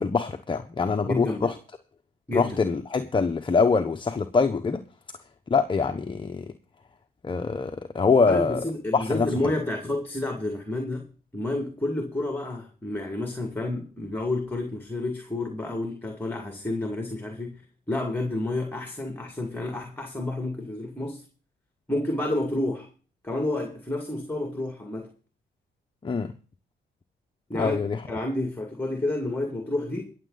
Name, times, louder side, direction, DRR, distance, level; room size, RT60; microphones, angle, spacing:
voice 1, 0.0-1.5 2.3-4.8 5.5-6.4 7.2-8.6 8.9-9.3 26.0-26.3 27.6-28.0, left 4 dB, 25° left, 1.0 m, -24 dB
voice 2, 1.1-1.5 2.3-2.6 8.3-17.6 17.9-21.3 21.9-22.9 23.2-25.1 27.5-27.8 28.1-30.1, left 2 dB, 10° left, 2.2 m, -30 dB
22.5 x 7.5 x 4.0 m
cardioid pair, 90°, 20 cm